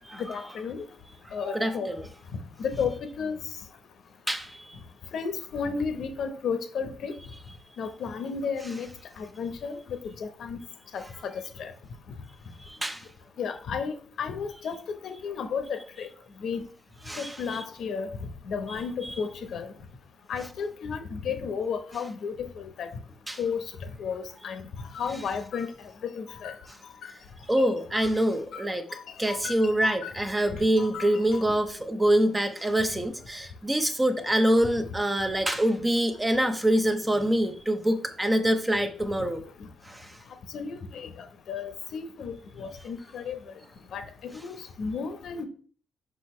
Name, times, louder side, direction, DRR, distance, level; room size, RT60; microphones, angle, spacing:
voice 1, 0.3-0.8 1.3-1.9 2.6-3.4 5.1-7.1 7.8-8.9 9.4-9.8 10.4-10.6 10.9-11.3 11.6-11.7 13.4-14.8 15.0-16.1 16.4-16.6 17.2-18.1 18.5-19.6 20.3-22.9 23.4-23.6 24.0-24.6 24.9-25.7 26.2-26.5 27.9-28.1 28.5-28.6 29.3-29.5 29.8-30.1 30.8-31.4 40.5-41.1 41.5-42.3 42.6-43.4 43.9-44.0 44.3-45.5, left 6 dB, 65° left, 8 dB, 0.9 m, -33 dB
voice 2, 1.4-2.1 4.3-4.8 12.6-13.0 17.1-17.4 19.0-19.1 23.3-23.4 27.5-28.8 29.2-39.4 39.9-40.1, right 1 dB, 10° right, 7 dB, 0.6 m, -25 dB
6.3 x 5.2 x 3.1 m, 0.43 s
cardioid pair, 135°, 0 cm